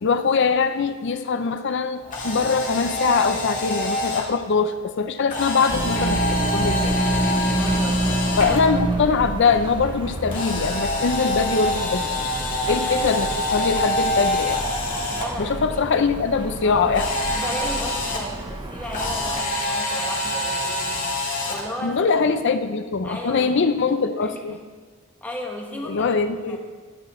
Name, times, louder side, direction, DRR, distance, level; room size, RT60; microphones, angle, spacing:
voice 1, 0.0-7.0 8.4-12.2 12.7-14.6 15.4-17.1 21.8-24.6 25.9-26.6, left 5 dB, 60° left, 9 dB, 0.5 m, -22 dB
Camera, 2.0-4.2 5.3-8.6 10.3-15.2 16.9-18.2 18.9-21.6, left 1 dB, 40° left, 1.9 m, -26 dB
sound 1, 5.7-19.4, right 1 dB, 20° right, 0.7 m, -28 dB
voice 2, 7.5-9.2 12.6-13.2 15.1-15.8 16.6-16.8 17.4-21.1 21.5-22.0 23.0-23.6 24.1-24.6 25.2-26.1 26.4-26.6, left 1 dB, 10° left, -1 dB, 1.3 m, -35 dB
12.5 x 10.0 x 3.1 m, 1.4 s
head